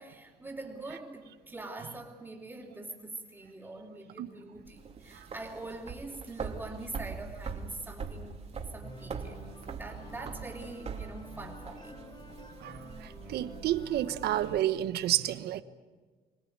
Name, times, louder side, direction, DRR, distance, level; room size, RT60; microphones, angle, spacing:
voice 1, 0.0-8.4 8.7-9.4 9.8-12.0, right 2 dB, 10° right, 3.4 m, -44 dB
sound 1, 4.7-14.6, right 5 dB, 40° right, 2.9 m, -43 dB
sound 2, 8.8-14.6, equal, 30° left, 5.4 m, -49 dB
voice 2, 12.6-15.6, right 13 dB, 70° right, 1.3 m, -30 dB
25.5 x 17.5 x 9.5 m
cardioid pair, 110°, 17 cm